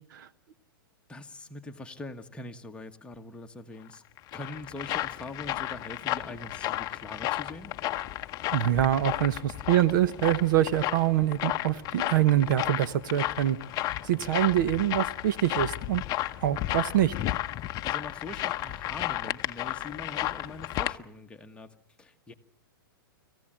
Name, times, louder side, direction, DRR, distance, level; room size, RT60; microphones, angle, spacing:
voice 1, 1.1-4.0 4.3-7.7 14.0-14.3 17.8-22.3, left 2 dB, 10° left, 4 dB, 1.5 m, -43 dB
sound 1, 3.9-21.0, left 14 dB, 30° left, 0.8 m, -33 dB
voice 2, 8.5-13.6 14.0-16.0 16.4-17.1, right 12 dB, 60° right, 14 dB, 1.0 m, -25 dB
26.0 x 15.5 x 8.9 m, 0.77 s
hypercardioid pair, 125°, 12 cm